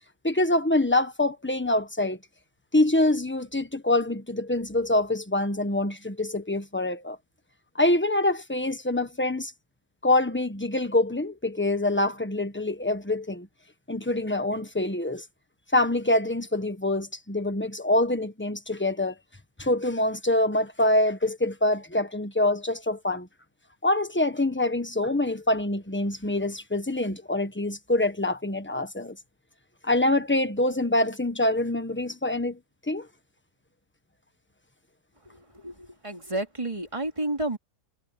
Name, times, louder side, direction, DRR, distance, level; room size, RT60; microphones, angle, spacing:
voice 1, 0.2-2.2 2.7-7.2 7.7-9.5 10.0-13.5 13.9-15.2 15.7-19.1 19.6-23.3 23.8-29.2 29.8-32.6 32.9-33.1, left 1 dB, 10° left, 1.2 m, -25 dB
voice 2, 35.3-37.6, right 1 dB, 20° right, 3.1 m, -31 dB
omnidirectional pair, 1.7 m